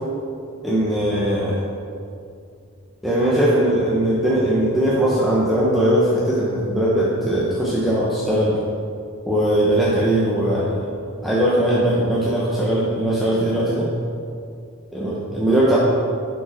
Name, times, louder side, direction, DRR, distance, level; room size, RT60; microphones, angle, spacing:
voice 1, 0.6-1.6 3.0-8.6 9.3-10.9 11.2-13.9 14.9-15.8, right 1 dB, ahead, -8 dB, 0.9 m, -20 dB
10.5 x 5.3 x 4.4 m, 2.4 s
head